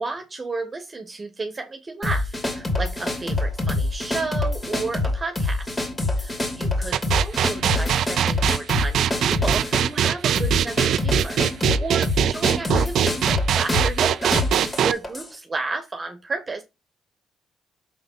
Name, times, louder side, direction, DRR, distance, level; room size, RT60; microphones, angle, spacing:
voice 1, 0.0-5.8 6.2-6.3 6.6-14.4 14.8-16.6, right 3 dB, 30° right, 5 dB, 1.5 m, -32 dB
sound 1, 2.0-15.3, left 2 dB, 25° left, 2.9 m, -26 dB
sound 2, 6.9-14.9, right 9 dB, 70° right, 0.4 m, -21 dB
6.7 x 3.9 x 5.6 m, 0.23 s
cardioid pair, 90°, 0 cm